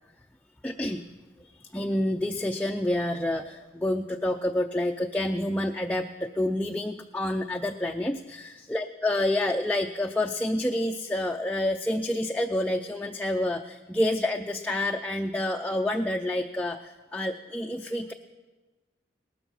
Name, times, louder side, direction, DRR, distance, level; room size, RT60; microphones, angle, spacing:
voice 1, 0.6-1.1 1.7-18.1, left 1 dB, 10° left, 3 dB, 0.4 m, -28 dB
18.5 x 13.0 x 5.5 m, 1.2 s
head